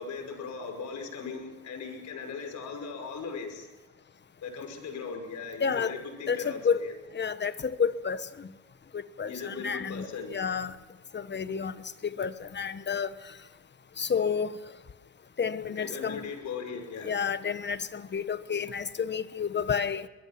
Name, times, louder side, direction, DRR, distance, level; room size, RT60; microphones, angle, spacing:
voice 1, 0.0-3.7 4.4-7.0 9.3-10.4 15.8-17.2, left 5 dB, 70° left, 5.6 m, -38 dB
voice 2, 5.6-5.9 6.3-6.9 7.1-8.5 8.9-10.8 11.1-11.7 12.2-13.1 14.0-14.5 15.4-16.2 17.0-20.1, left 6 dB, 35° left, 1.2 m, -30 dB
22.5 x 22.5 x 6.0 m
cardioid pair, 90°, 30 cm